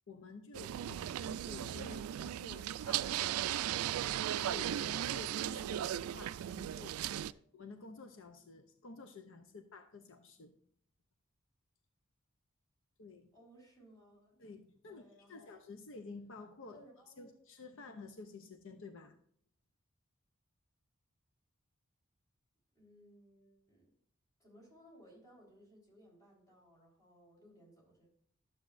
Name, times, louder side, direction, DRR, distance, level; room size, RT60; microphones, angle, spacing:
voice 1, 0.1-3.7 4.3-10.6 13.0-13.3 14.4-16.8 17.2-19.2, left 3 dB, 65° left, 7 dB, 0.6 m, -51 dB
sound 1, 0.5-7.3, right 11 dB, 90° right, 0.3 m, -37 dB
voice 2, 13.3-14.4 14.8-15.6 16.7-17.4 22.7-23.9 24.4-28.1, equal, 15° left, -4 dB, 4.0 m, -61 dB
12.0 x 7.5 x 2.6 m, 0.65 s
head